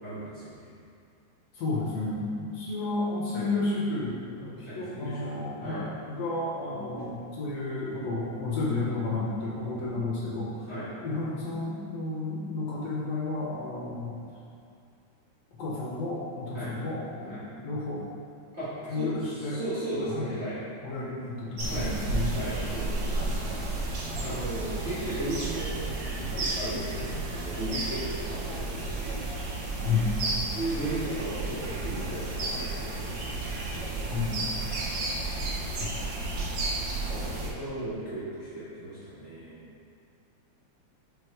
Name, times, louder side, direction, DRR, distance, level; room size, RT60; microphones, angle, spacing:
voice 1, 0.0-0.7 3.3-3.5 4.6-5.8 7.0-7.1 10.7-10.9 16.5-16.7 17.3-17.4 18.5-19.2 19.5-20.6 21.7-21.9 22.3-23.2 24.2-29.1 30.5-34.2 37.0-39.6, right 1 dB, 30° right, -13 dB, 1.3 m, -36 dB
voice 2, 1.5-10.7 11.0-14.2 15.6-18.1 18.9-19.6 20.1-20.3 20.8-22.3 23.3-23.5 29.8-30.1 34.1-34.3 35.8-36.0, left 3 dB, 70° left, -5 dB, 1.8 m, -32 dB
sound 1, 21.6-37.5, right 2 dB, 80° right, 1.0 m, -32 dB
5.0 x 4.3 x 4.8 m, 2.5 s
omnidirectional pair, 3.3 m